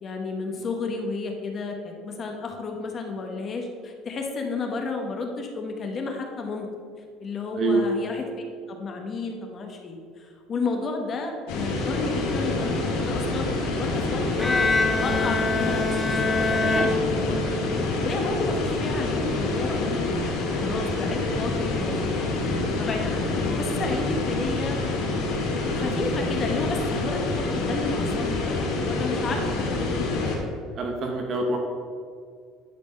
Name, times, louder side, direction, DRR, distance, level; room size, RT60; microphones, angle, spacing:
voice 1, 0.0-6.7 7.2-8.2 8.7-14.7 14.9-16.0 16.2-20.2 20.5-25.0 25.7-30.3, left 3 dB, 25° left, 3 dB, 1.0 m, -32 dB
voice 2, 7.5-7.9 29.7-29.8 30.7-31.6, right 2 dB, 35° right, 2 dB, 0.8 m, -26 dB
sound 1, 11.5-30.4, left 2 dB, 85° left, 2.2 m, -27 dB
Bowed string instrument, 14.4-17.7, left 2 dB, 10° left, 0.4 m, -25 dB
10.5 x 4.1 x 5.4 m, 2.2 s
cardioid pair, 175°, 0 cm